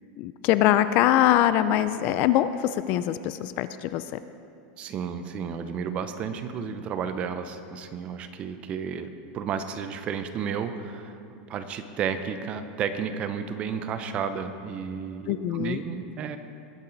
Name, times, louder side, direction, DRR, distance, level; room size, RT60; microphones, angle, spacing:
voice 1, 0.2-4.2 15.3-15.8, left 12 dB, 40° left, 13 dB, 0.4 m, -23 dB
voice 2, 4.8-9.1 9.3-11.2 11.5-16.4, right 7 dB, 25° right, 9 dB, 0.7 m, -32 dB
20.0 x 8.9 x 4.0 m, 2.6 s
supercardioid pair, 165°, 4 cm